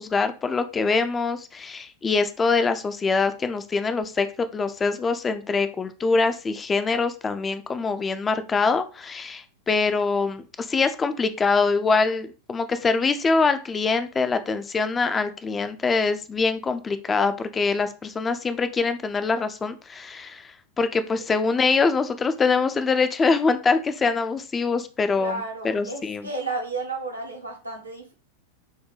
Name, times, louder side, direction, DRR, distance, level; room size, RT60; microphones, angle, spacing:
voice 1, 0.0-20.5 20.8-26.3, left 4 dB, 20° left, 10 dB, 0.4 m, -24 dB
voice 2, 25.1-28.1, right 3 dB, 85° right, 0 dB, 0.9 m, -32 dB
4.5 x 2.1 x 3.2 m, 0.35 s
figure-of-eight pair, 90°, 0 cm